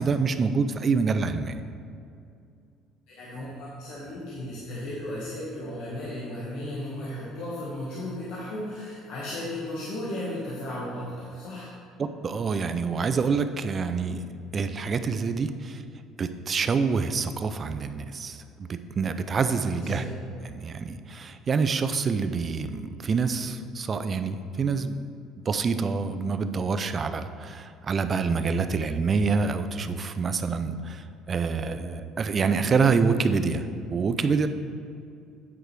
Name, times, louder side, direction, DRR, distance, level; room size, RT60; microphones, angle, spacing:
voice 1, 0.0-1.6 12.0-14.2 14.5-15.8 16.2-20.0 20.4-25.0 25.5-34.5, right 5 dB, 35° right, 9 dB, 0.4 m, -26 dB
voice 2, 3.1-11.7 19.8-20.1, left 1 dB, 80° left, -7 dB, 1.6 m, -35 dB
8.9 x 4.9 x 4.6 m, 2.5 s
cardioid pair, 120°, 0 cm